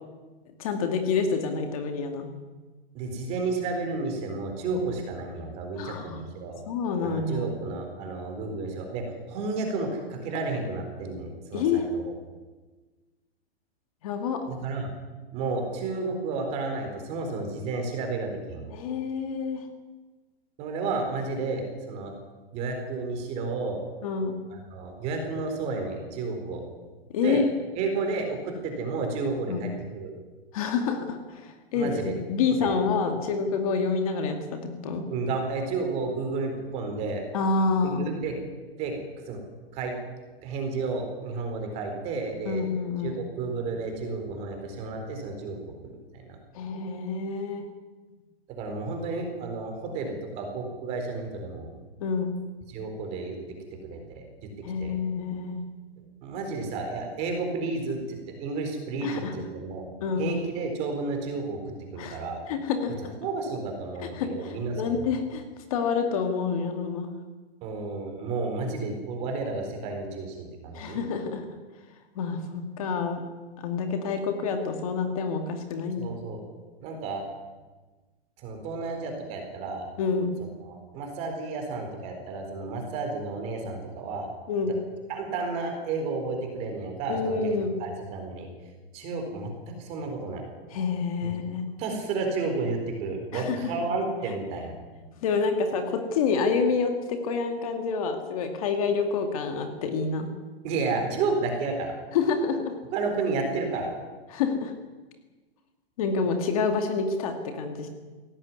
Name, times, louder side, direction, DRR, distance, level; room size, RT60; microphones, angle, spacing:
voice 1, 0.6-2.3 5.8-6.4 6.7-7.5 11.5-11.8 14.0-14.4 18.7-19.6 24.0-24.4 27.1-27.5 29.5-29.6 30.5-32.0 32.3-35.1 37.3-38.0 42.5-43.2 46.5-47.7 52.0-52.3 54.6-55.6 59.0-59.4 60.0-60.3 62.0-62.9 64.1-65.4 65.7-67.1 70.7-71.5 72.2-73.2 73.6-76.1 80.0-80.3 84.5-84.7 87.1-87.8 90.7-91.8 93.3-93.6 95.2-100.3 102.1-102.7 104.3-104.7 106.0-107.9, left 5 dB, 35° left, 5 dB, 2.3 m, -28 dB
voice 2, 2.9-6.6 7.0-12.1 14.4-14.9 15.3-18.7 20.6-22.1 22.5-23.8 24.5-26.6 27.2-27.4 27.8-30.1 31.7-32.2 32.6-32.7 35.1-37.2 38.0-38.3 38.8-38.9 39.3-39.4 39.7-39.9 40.4-42.7 43.0-45.6 45.8-46.0 46.2-46.4 48.5-51.7 52.7-53.4 53.8-54.2 54.8-54.9 56.2-59.8 60.2-61.6 61.9-62.4 63.2-65.0 67.6-71.0 76.0-76.4 76.8-77.2 78.4-79.9 80.6-84.3 85.1-87.4 87.8-88.5 88.9-89.5 89.8-90.4 91.2-91.3 91.8-94.7 100.6-101.9 102.9-103.9, right 3 dB, 20° right, 4 dB, 4.2 m, -31 dB
20.5 x 17.5 x 9.7 m, 1.3 s
hypercardioid pair, 180°, 31 cm